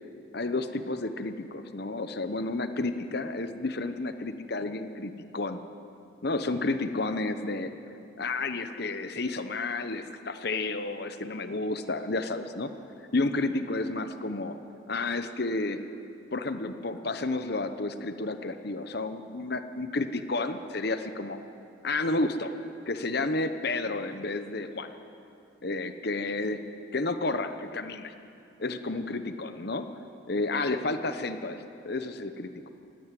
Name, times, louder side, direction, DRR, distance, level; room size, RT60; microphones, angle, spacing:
voice 1, 0.3-5.6 6.2-7.7 8.2-12.7 13.1-14.6 14.9-15.8 16.3-21.4 21.8-22.6 22.9-24.9 25.6-26.6 26.9-28.1 28.6-29.9 30.3-32.7, left 2 dB, 50° left, 9 dB, 0.9 m, -31 dB
18.0 x 15.5 x 9.2 m, 2.7 s
head